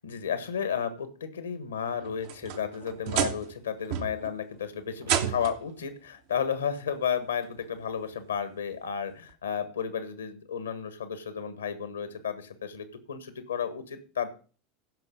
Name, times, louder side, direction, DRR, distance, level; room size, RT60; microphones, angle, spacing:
voice 1, 0.0-14.3, left 7 dB, 75° left, 12 dB, 1.6 m, -33 dB
sound 1, 2.0-3.6 3.9-4.4 5.0-5.7 6.9-7.0 7.6-7.7 9.3-9.4, right 9 dB, 55° right, 1.1 m, -31 dB
15.5 x 6.0 x 5.4 m, 0.38 s
figure-of-eight pair, 80°, 0 cm